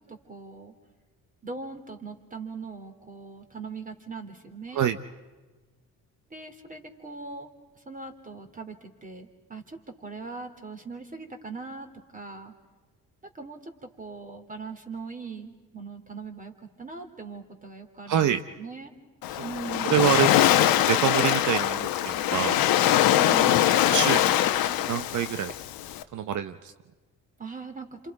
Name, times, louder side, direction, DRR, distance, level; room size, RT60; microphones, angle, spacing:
voice 1, 0.1-0.7 1.4-4.8 6.3-7.5 7.9-11.9 12.1-12.5 13.3-13.7 14.0-16.5 16.8-18.9 19.4-19.9 23.0-23.6 27.4-27.9, right 4 dB, 25° right, 5 dB, 2.9 m, -40 dB
voice 2, 18.1-18.4 19.3-19.4 19.9-22.6 23.5-24.4 24.8-25.5 26.1-26.7, right 9 dB, 60° right, 9 dB, 0.8 m, -27 dB
Waves surf, 19.2-26.0, left 12 dB, 90° left, 1.0 m, -23 dB
28.0 x 27.0 x 4.8 m, 1.3 s
cardioid pair, 95°, 35 cm